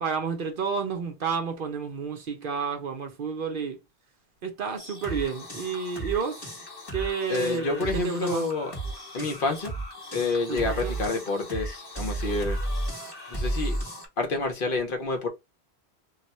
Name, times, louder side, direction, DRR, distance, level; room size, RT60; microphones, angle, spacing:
voice 1, 0.0-3.8 4.4-6.4 6.9-8.5 10.5-10.9, right 5 dB, 60° right, 0.7 m, -30 dB
sound 1, 4.8-14.1, right 1 dB, 25° left, 1.1 m, -34 dB
voice 2, 7.3-8.7 9.1-9.8 10.1-12.6 13.3-13.8 14.2-15.3, left 3 dB, 55° left, 0.9 m, -28 dB
2.4 x 2.2 x 3.9 m
omnidirectional pair, 1.1 m